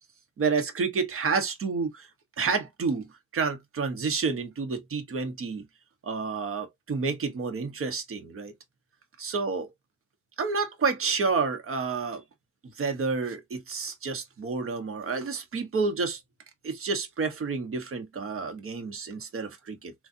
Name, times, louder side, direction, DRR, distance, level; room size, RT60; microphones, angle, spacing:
voice 1, 0.4-2.1 2.4-5.6 6.0-8.5 9.2-9.7 10.4-12.2 12.8-16.2 16.6-19.9, right 4 dB, 45° right, 1.2 m, -29 dB
3.8 x 2.5 x 2.7 m
cardioid pair, 90°, 30 cm